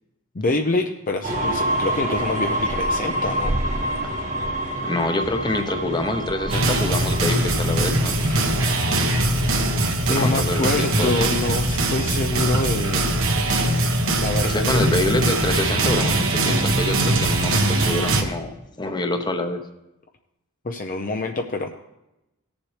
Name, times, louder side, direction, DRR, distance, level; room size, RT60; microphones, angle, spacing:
voice 1, 0.3-3.5 8.2-8.6 10.1-13.2 14.2-14.8 20.6-21.7, left 2 dB, 40° left, 4 dB, 0.6 m, -26 dB
sound 1, 1.2-9.9, right 1 dB, 35° right, 1.4 m, -27 dB
voice 2, 4.8-8.2 10.1-11.1 14.4-19.6, left 2 dB, 20° left, 6 dB, 0.9 m, -26 dB
sound 2, 6.5-18.2, right 2 dB, 70° right, 1.4 m, -21 dB
18.0 x 7.1 x 3.3 m, 0.93 s
head